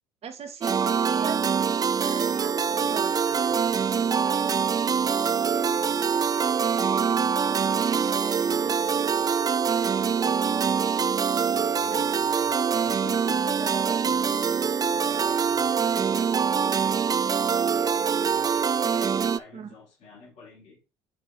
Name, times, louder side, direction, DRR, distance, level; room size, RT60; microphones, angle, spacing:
voice 1, 0.2-0.7 1.0-1.4 2.0-3.2 11.5-12.1 19.5-19.7, right 6 dB, 45° right, 1.8 m, -39 dB
sound 1, 0.6-19.4, right 6 dB, 25° right, 0.4 m, -24 dB
voice 2, 3.3-9.9 10.6-11.0 11.5-17.7 18.2-20.8, left 4 dB, 55° left, 4.6 m, -49 dB
7.9 x 3.8 x 4.7 m
hypercardioid pair, 70°, 15 cm